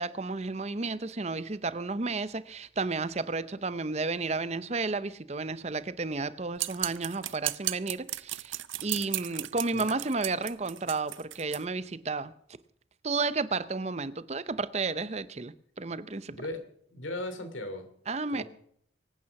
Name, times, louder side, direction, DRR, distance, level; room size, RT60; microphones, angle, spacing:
voice 1, 0.0-12.3 13.0-16.4 18.1-18.4, right 3 dB, 35° right, 0.7 m, -32 dB
sound 1, 6.6-11.6, right 16 dB, 85° right, 0.6 m, -35 dB
voice 2, 16.3-16.6 16.9-17.9 18.3-18.4, left 1 dB, 90° left, 3.0 m, -37 dB
24.0 x 9.3 x 5.9 m
head